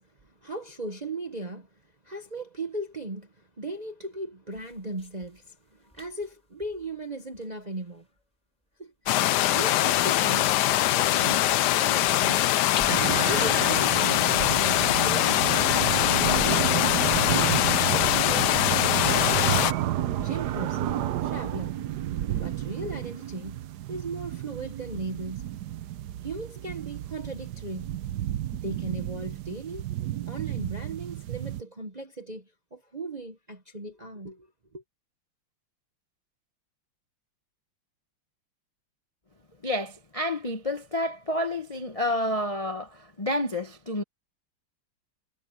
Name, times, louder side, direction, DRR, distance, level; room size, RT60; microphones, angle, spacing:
voice 1, 0.0-1.7 2.0-8.1 8.8-10.5 10.9-11.5 11.8-12.5 13.3-15.6 16.1-16.7 17.0-17.5 17.9-18.5 18.9-19.7 20.2-21.8 22.4-23.6 23.9-25.5 26.2-27.9 28.5-29.8 30.3-32.4 32.7-34.5 34.7-34.8, right 2 dB, 30° right, 0.8 m, -37 dB
sound 1, 4.5-17.8, equal, 5° left, 3.8 m, -54 dB
sound 2, 9.1-19.7, left 14 dB, 80° left, 0.9 m, -23 dB
sound 3, 12.9-31.6, right 12 dB, 65° right, 1.0 m, -31 dB
voice 2, 39.6-44.0, left 1 dB, 30° left, 0.6 m, -29 dB
omnidirectional pair, 2.4 m